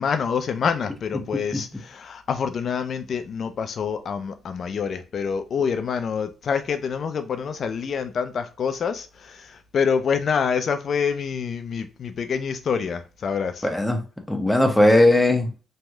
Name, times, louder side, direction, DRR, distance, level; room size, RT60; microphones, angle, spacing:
voice 1, 0.0-13.6, left 6 dB, 55° left, 0.4 m, -26 dB
voice 2, 1.1-1.6 13.6-14.0 14.3-15.5, left 1 dB, 5° left, 0.7 m, -19 dB
3.0 x 2.6 x 2.2 m
cardioid pair, 90°, 0 cm